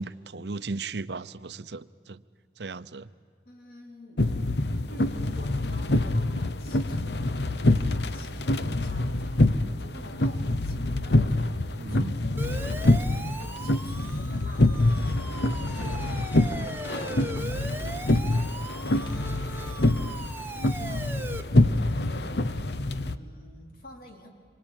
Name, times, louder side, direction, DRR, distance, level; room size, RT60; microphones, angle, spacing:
voice 1, 0.0-2.2 2.6-3.1 11.8-12.1, right 3 dB, 75° right, 14 dB, 0.8 m, -36 dB
voice 2, 3.4-4.3 4.9-21.6 21.9-22.4 22.8-24.3, left 1 dB, 55° left, 2 dB, 4.0 m, -49 dB
sound 1, 4.2-23.2, left 1 dB, 75° left, 0.9 m, -26 dB
Siren, 12.4-21.4, right 2 dB, 10° right, 1.1 m, -39 dB
27.0 x 24.5 x 9.0 m, 2.2 s
head